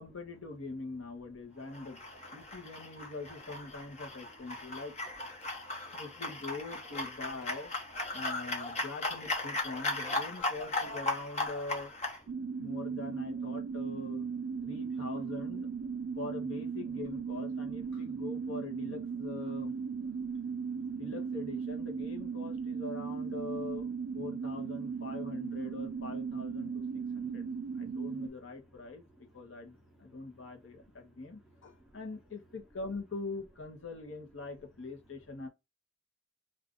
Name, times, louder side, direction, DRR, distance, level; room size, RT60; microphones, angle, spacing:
voice 1, 0.0-2.0 2.3-4.9 5.9-7.7 8.1-11.9 12.6-14.3 14.6-15.7 16.2-19.7 21.0-27.5 27.8-35.5, left 3 dB, 70° left, 0.8 m, -43 dB
sound 1, 1.7-12.2, left 2 dB, 30° left, 0.7 m, -37 dB
voice 2, 5.4-6.0 12.4-12.7 14.6-14.7 20.3-21.0 26.9-28.0 29.1-30.2 30.7-31.2 31.8-32.0, right 1 dB, ahead, 0.6 m, -63 dB
sound 2, 12.3-28.3, right 5 dB, 65° right, 0.4 m, -37 dB
2.4 x 2.4 x 3.5 m
head